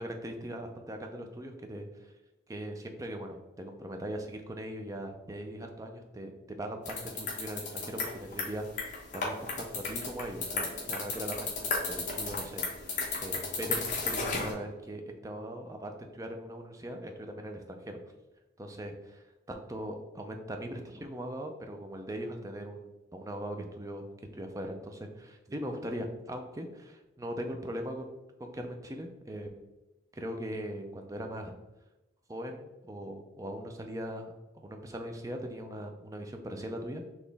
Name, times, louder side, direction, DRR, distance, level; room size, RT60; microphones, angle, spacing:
voice 1, 0.0-2.1 2.5-18.0 18.6-24.1 24.3-29.7 30.1-31.6 32.3-37.0, equal, 15° right, 4 dB, 0.4 m, -40 dB
sound 1, 6.8-14.5, left 3 dB, 40° left, 0.9 m, -34 dB
4.1 x 3.0 x 3.3 m, 1.0 s
head